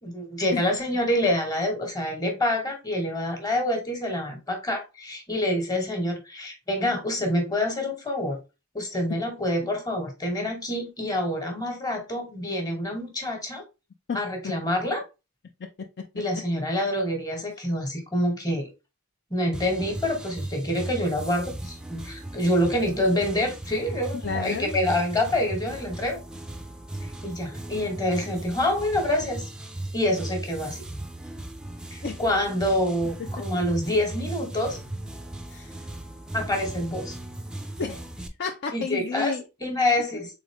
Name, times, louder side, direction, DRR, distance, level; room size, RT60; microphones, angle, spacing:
voice 1, 0.0-8.4 8.7-13.6 14.1-15.0 16.1-18.7 19.3-26.2 27.0-29.5 29.9-30.8 31.9-34.8 36.3-37.2 38.7-39.3 39.6-40.3, left 1 dB, 15° left, 1.2 m, -27 dB
sound 1, 19.5-38.3, right 1 dB, 5° right, 0.5 m, -37 dB
voice 2, 24.1-24.8 32.0-32.2 33.2-33.4 35.5-35.9 37.8-39.4 40.1-40.2, left 5 dB, 50° left, 0.5 m, -32 dB
3.7 x 3.6 x 3.5 m
head